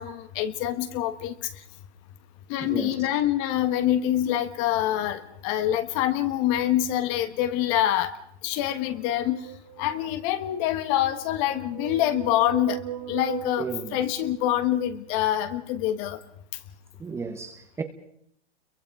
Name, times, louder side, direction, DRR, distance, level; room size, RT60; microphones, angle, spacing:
voice 1, 0.0-1.3 2.5-8.1 8.4-9.4 9.8-12.8 13.1-16.2, left 12 dB, 30° left, 1.3 m, -25 dB
voice 2, 2.6-2.9 13.6-14.0 17.0-17.8, right 4 dB, 10° right, 1.1 m, -34 dB
sound 1, 8.6-10.2 11.1-15.0, right 13 dB, 45° right, 2.1 m, -39 dB
29.5 x 23.0 x 4.8 m
hypercardioid pair, 145°, 33 cm